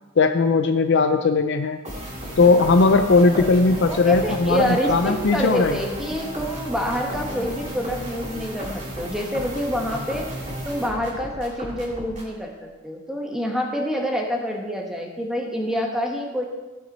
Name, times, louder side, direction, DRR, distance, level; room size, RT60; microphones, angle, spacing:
voice 1, 0.2-1.8 2.4-5.8, left 3 dB, 55° left, 7 dB, 0.4 m, -18 dB
sound 1, 1.8-12.4, equal, 35° right, 2.2 m, -34 dB
voice 2, 3.3-16.4, equal, ahead, 0 dB, 1.3 m, -27 dB
15.0 x 6.0 x 4.2 m, 1.2 s
head